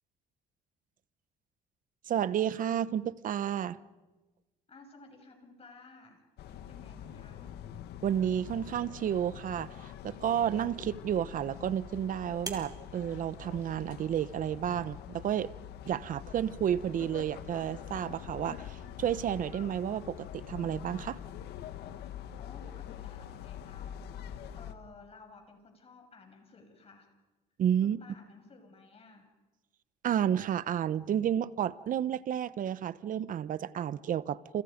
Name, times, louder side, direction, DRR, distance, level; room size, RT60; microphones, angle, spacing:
voice 1, 2.1-3.8 8.0-15.5 15.9-21.2 27.6-28.0 30.0-34.6, right 9 dB, 50° right, 1.0 m, -31 dB
voice 2, 4.7-7.5 22.4-24.2 24.5-27.1 27.8-29.3, left 3 dB, 35° left, 6.6 m, -55 dB
sound 1, 6.4-24.7, left 10 dB, 75° left, 1.7 m, -45 dB
sound 2, 10.1-15.1, right 3 dB, 20° right, 4.2 m, -50 dB
29.5 x 28.5 x 5.2 m
cardioid pair, 110°, 17 cm